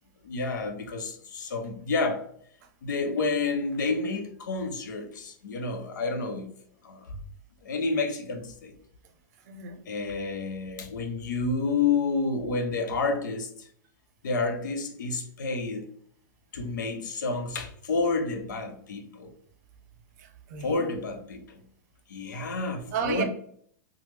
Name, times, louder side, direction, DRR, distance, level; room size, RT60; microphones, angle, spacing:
voice 1, 0.2-2.3 2.8-6.5 6.8-7.2 7.6-8.8 9.9-13.7 14.2-15.9 16.5-19.3 20.6-21.4 22.1-23.2, left 3 dB, 80° left, 0.6 m, -29 dB
voice 2, 9.5-9.8 20.2-20.9 22.9-23.2, right 7 dB, 55° right, 0.6 m, -33 dB
3.0 x 2.0 x 3.2 m
hypercardioid pair, 125°, 10 cm